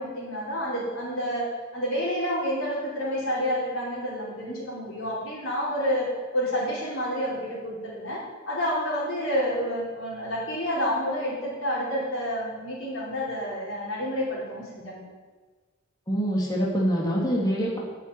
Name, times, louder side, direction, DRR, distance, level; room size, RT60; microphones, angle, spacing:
voice 1, 0.0-15.1, equal, 80° left, -5 dB, 4.9 m, -29 dB
voice 2, 16.1-17.8, equal, 20° left, -4 dB, 2.5 m, -25 dB
9.1 x 8.9 x 9.5 m, 1.4 s
head